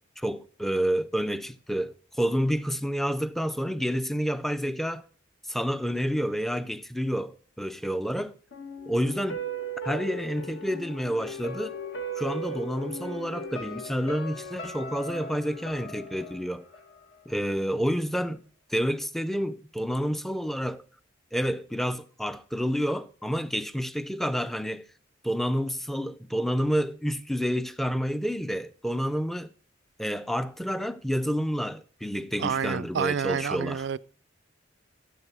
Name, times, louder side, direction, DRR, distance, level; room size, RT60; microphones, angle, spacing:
voice 1, 0.2-5.1 5.5-8.3 8.9-9.4 9.8-11.8 12.2-16.7 17.3-18.4 18.7-20.8 21.3-24.8 25.2-29.5 30.0-33.8, equal, ahead, 0.4 m, -29 dB
sound 1, 8.5-17.5 17.8-17.9, right 1 dB, 70° left, 1.5 m, -38 dB
voice 2, 32.4-34.0, right 7 dB, 65° right, 0.4 m, -28 dB
14.5 x 7.4 x 4.9 m
head